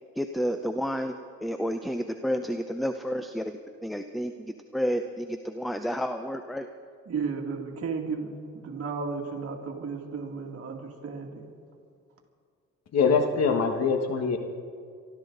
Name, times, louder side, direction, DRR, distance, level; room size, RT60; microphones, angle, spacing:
voice 1, 0.2-6.7, equal, ahead, 8 dB, 0.6 m, -31 dB
voice 2, 7.1-11.5, right 5 dB, 50° right, 1 dB, 2.4 m, -34 dB
voice 3, 12.9-14.4, left 5 dB, 55° left, 6 dB, 1.6 m, -23 dB
25.5 x 12.5 x 4.0 m, 2.2 s
cardioid pair, 90°, 30 cm